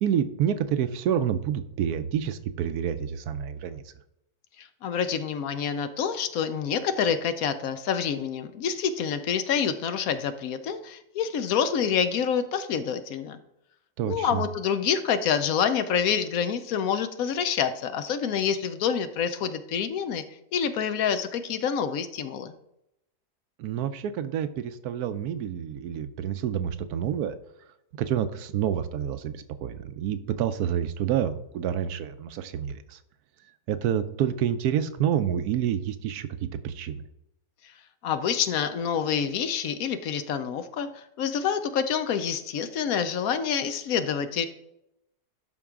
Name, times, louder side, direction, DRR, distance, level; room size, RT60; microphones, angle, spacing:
voice 1, 0.0-3.8 14.0-14.4 23.6-27.3 28.0-33.0 33.7-37.0, right 9 dB, 80° right, 11 dB, 1.1 m, -28 dB
voice 2, 4.6-13.4 14.0-20.2 20.5-22.5 38.0-44.5, left 7 dB, 70° left, 10 dB, 1.0 m, -27 dB
11.5 x 4.6 x 3.7 m, 0.81 s
omnidirectional pair, 1.7 m